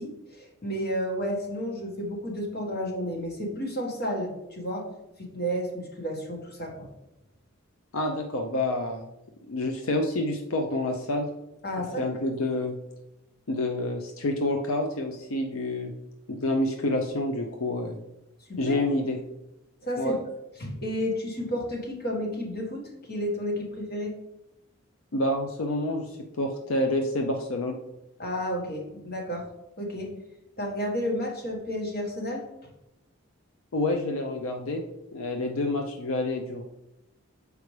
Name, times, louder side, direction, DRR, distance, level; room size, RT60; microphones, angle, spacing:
voice 1, 0.0-4.9 5.2-6.9 11.6-12.0 18.5-18.8 19.8-20.1 20.6-24.1 28.2-29.5 29.8-30.1 30.6-32.5, equal, 45° left, 0 dB, 1.4 m, -31 dB
voice 2, 7.9-9.0 9.5-11.3 12.0-12.8 13.5-15.9 16.3-18.0 18.6-19.2 20.0-20.2 25.1-27.8 33.7-34.8 35.1-36.6, left 1 dB, 80° left, 3 dB, 0.6 m, -28 dB
6.7 x 4.7 x 3.2 m, 0.92 s
head